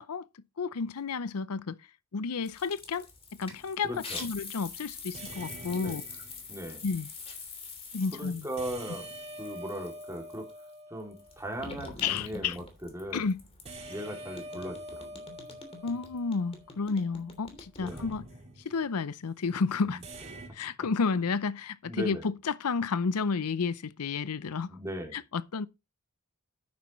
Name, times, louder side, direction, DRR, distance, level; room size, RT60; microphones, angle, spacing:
voice 1, 0.0-1.8 2.1-3.1 3.4-6.0 6.8-7.1 7.9-8.5 12.0-12.6 13.1-13.4 15.8-18.3 18.6-20.0 20.5-24.7 25.1-25.7, left 5 dB, 80° left, 0.6 m, -31 dB
sound 1, 2.4-10.6 11.1-14.0 14.4-18.2, left 4 dB, 25° left, 3.1 m, -45 dB
sound 2, 3.4-3.7 5.1-6.7 8.6-11.6 13.6-17.0 17.9-18.9 20.0-20.5, right 1 dB, 30° right, 2.3 m, -45 dB
voice 2, 3.8-4.2 5.7-6.0 6.5-6.9 8.1-10.5 10.9-12.6 12.9-13.2 13.9-15.2 17.8-18.1 19.9-20.0 21.8-22.2 24.7-25.2, equal, 15° right, 2.7 m, -38 dB
10.5 x 9.5 x 3.1 m
head